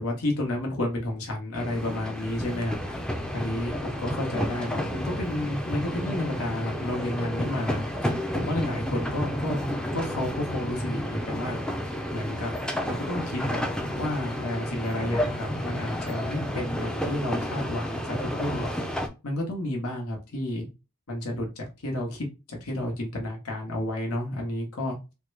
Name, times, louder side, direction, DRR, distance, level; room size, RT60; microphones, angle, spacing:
voice 1, 0.0-3.0 3.3-9.6 9.9-11.6 12.1-12.5 12.8-13.7 14.0-20.7 21.1-25.0, left 1 dB, 85° left, 0 dB, 1.0 m, -31 dB
sound 1, 1.5-19.1, equal, 5° left, 0.3 m, -31 dB
3.5 x 2.2 x 3.2 m, 0.28 s
head